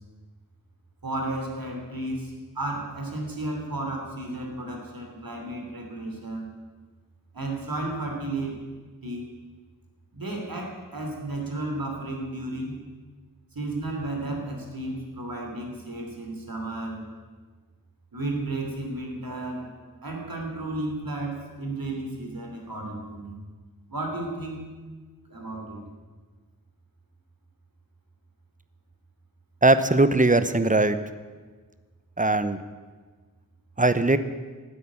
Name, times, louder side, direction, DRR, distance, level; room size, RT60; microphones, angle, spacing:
voice 1, 1.0-6.5 7.3-8.6 9.0-9.3 10.1-12.8 13.5-17.1 18.1-19.7 20.0-23.4 23.9-24.6 25.3-25.8, right 2 dB, 80° right, 1 dB, 3.1 m, -33 dB
voice 2, 29.6-31.0 32.2-32.6 33.8-34.2, right 2 dB, 25° right, 12 dB, 0.8 m, -20 dB
12.5 x 9.3 x 8.5 m, 1.4 s
wide cardioid pair, 50°, 35 cm